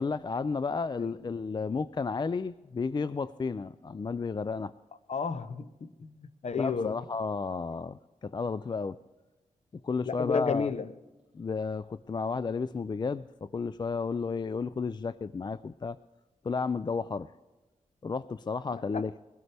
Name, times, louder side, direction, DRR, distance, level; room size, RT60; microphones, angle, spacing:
voice 1, 0.0-4.7 6.6-9.0 9.8-10.7 11.3-16.0 16.4-17.3 18.0-19.1, left 4 dB, 35° left, 0.4 m, -32 dB
voice 2, 5.1-7.0 10.1-10.9 18.9-19.0, left 5 dB, 55° left, 0.8 m, -32 dB
22.0 x 13.5 x 3.4 m
cardioid pair, 50°, 14 cm